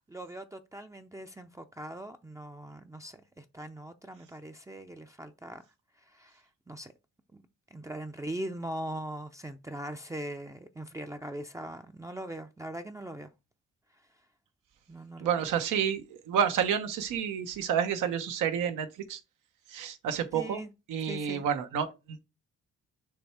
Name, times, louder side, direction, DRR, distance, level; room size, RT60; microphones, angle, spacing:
voice 1, 0.1-5.6 6.1-6.9 7.3-7.4 7.7-13.3 14.9-15.3 20.3-20.7 21.0-21.5, right 1 dB, 10° right, 0.5 m, -41 dB
voice 2, 15.2-19.2 19.7-20.6 20.9-22.2, right 8 dB, 90° right, 1.0 m, -30 dB
6.2 x 3.2 x 4.7 m
cardioid pair, 90°, 30 cm